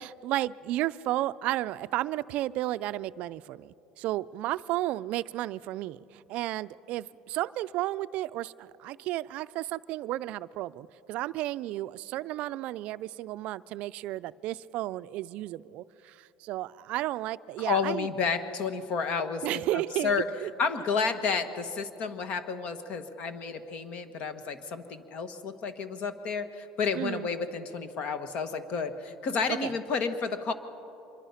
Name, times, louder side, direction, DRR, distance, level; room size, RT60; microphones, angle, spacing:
voice 1, 0.0-18.1 19.4-20.5 27.0-27.3 29.5-29.7, right 15 dB, 60° right, 15 dB, 0.4 m, -33 dB
voice 2, 17.6-20.3 20.6-30.5, left 5 dB, 50° left, 10 dB, 1.5 m, -31 dB
25.5 x 22.5 x 5.8 m, 2.9 s
cardioid pair, 130°, 3 cm